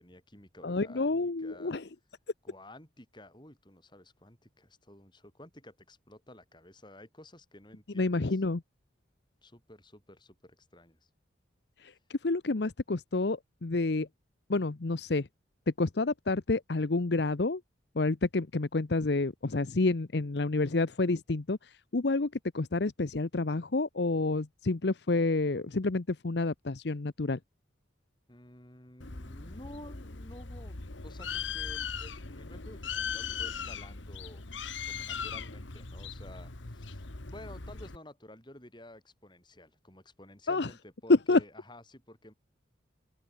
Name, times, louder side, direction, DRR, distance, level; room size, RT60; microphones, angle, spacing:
voice 1, 0.0-1.8 2.4-8.4 9.4-11.1 28.3-34.4 34.8-42.3, left 1 dB, 25° left, 6.3 m, -52 dB
voice 2, 0.6-1.8 8.0-8.6 11.8-14.1 14.5-15.3 15.8-17.6 18.0-27.4 40.5-40.7 41.3-41.4, left 3 dB, 60° left, 0.8 m, -29 dB
Bird, 29.0-38.0, left 6 dB, 80° left, 1.8 m, -39 dB
open air
head